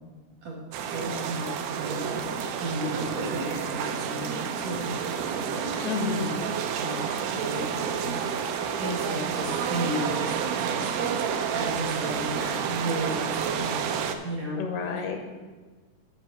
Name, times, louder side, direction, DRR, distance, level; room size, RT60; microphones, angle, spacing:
voice 1, 0.4-6.4 6.7-14.6 15.0-15.1, right 1 dB, 60° right, -5 dB, 1.9 m, -34 dB
sound 1, 0.7-14.2, right 7 dB, 90° right, 2.7 m, -30 dB
voice 2, 5.8-6.3 14.6-15.2, left 5 dB, 85° left, 4 dB, 2.7 m, -29 dB
9.2 x 4.1 x 7.0 m, 1.3 s
omnidirectional pair, 4.6 m